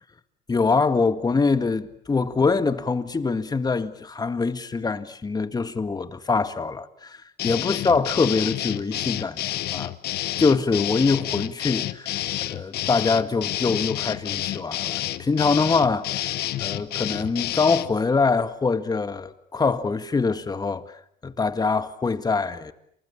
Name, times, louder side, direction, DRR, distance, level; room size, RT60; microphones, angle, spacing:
voice 1, 0.5-9.4 9.7-9.9 10.4-16.3 16.6-20.8 21.2-22.7, left 4 dB, 25° left, 1.9 m, -24 dB
sound 1, 7.4-17.9, left 14 dB, 70° left, 1.3 m, -29 dB
29.5 x 27.5 x 7.2 m
cardioid pair, 110°, 17 cm